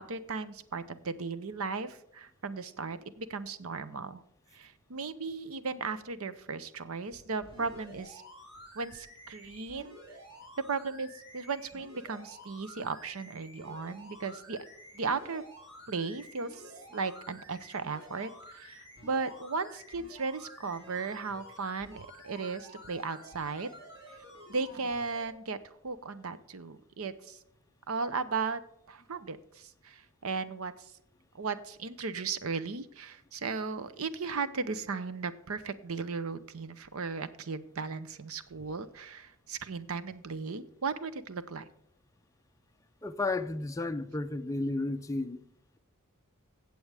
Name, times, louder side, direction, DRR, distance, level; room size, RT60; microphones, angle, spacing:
voice 1, 0.0-4.2 4.5-8.2 8.7-10.0 10.6-14.6 14.9-15.4 15.9-23.7 24.1-24.2 24.5-27.4 27.9-28.6 28.9-30.9 31.3-41.7, right 4 dB, 70° right, 0.7 m, -36 dB
sound 1, 7.4-25.3 25.9-26.0, equal, 25° right, 3.6 m, -51 dB
voice 2, 43.0-45.4, left 2 dB, 15° left, 0.4 m, -32 dB
15.5 x 7.8 x 3.4 m
head